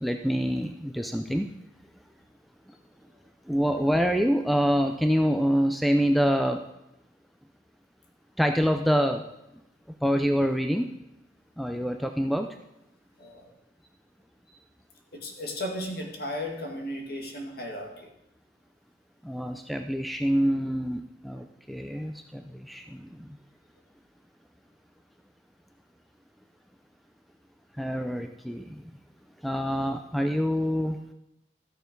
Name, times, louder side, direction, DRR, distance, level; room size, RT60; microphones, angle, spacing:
voice 1, 0.0-1.5 3.5-6.6 8.4-9.2 10.0-10.9 11.6-12.5 19.2-23.4 27.8-28.8 29.4-31.0, equal, ahead, 6 dB, 0.5 m, -26 dB
voice 2, 13.2-13.6 15.1-18.1, left 1 dB, 55° left, 2 dB, 2.0 m, -35 dB
13.5 x 6.8 x 5.3 m, 0.85 s
head